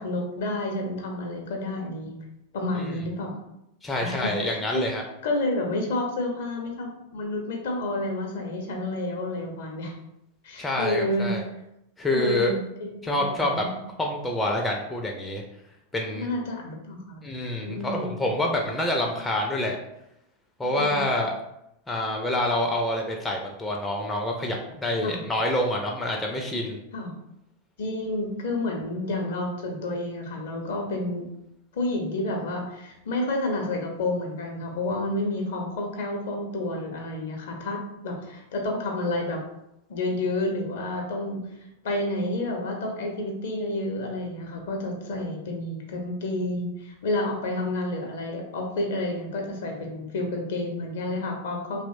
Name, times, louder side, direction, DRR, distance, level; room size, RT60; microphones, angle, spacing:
voice 1, 0.0-2.2 2.5-3.3 4.0-4.8 5.2-9.9 10.4-11.4 12.1-13.8 16.2-17.2 17.6-18.2 20.6-21.1 25.0-25.2 26.9-27.1 27.8-31.3 31.7-39.4 39.9-41.4 41.8-51.8, left 2 dB, 60° left, 2 dB, 0.6 m, -30 dB
voice 2, 3.8-5.0 10.6-11.4 12.0-12.5 13.0-13.6 14.0-15.4 15.9-16.3 17.2-19.8 20.6-21.3 21.9-26.8, left 1 dB, 10° left, 0 dB, 0.3 m, -27 dB
2.8 x 2.1 x 2.6 m, 0.83 s
figure-of-eight pair, 90°, 0 cm